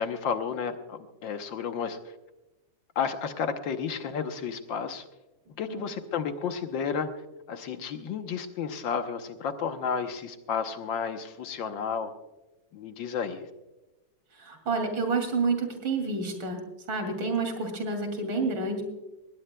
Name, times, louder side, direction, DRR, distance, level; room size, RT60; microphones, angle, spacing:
voice 1, 0.0-2.0 2.9-5.0 5.6-7.1 7.5-12.1 12.7-13.4, left 6 dB, 70° left, 8 dB, 1.6 m, -32 dB
voice 2, 14.3-18.8, right 3 dB, 65° right, 4 dB, 3.4 m, -29 dB
19.5 x 18.0 x 2.2 m, 1.0 s
omnidirectional pair, 2.2 m